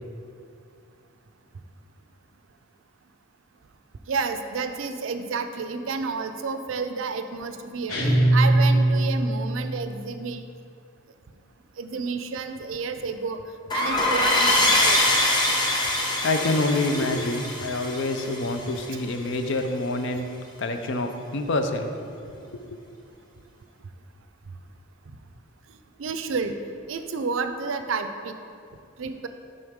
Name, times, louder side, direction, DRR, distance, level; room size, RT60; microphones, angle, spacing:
voice 1, 4.1-10.4 11.8-13.4 13.7-15.0 26.0-26.6 26.9-28.3 29.0-29.3, right 4 dB, 70° right, 8 dB, 0.4 m, -30 dB
sound 1, 7.9-9.6, right 1 dB, 90° left, 1.6 m, -20 dB
sound 2, 13.7-19.0, left 1 dB, 20° left, 0.8 m, -23 dB
voice 2, 16.2-20.3 20.6-22.2 22.5-22.8, left 2 dB, 60° left, 6 dB, 0.5 m, -27 dB
7.8 x 5.5 x 3.6 m, 2.4 s
head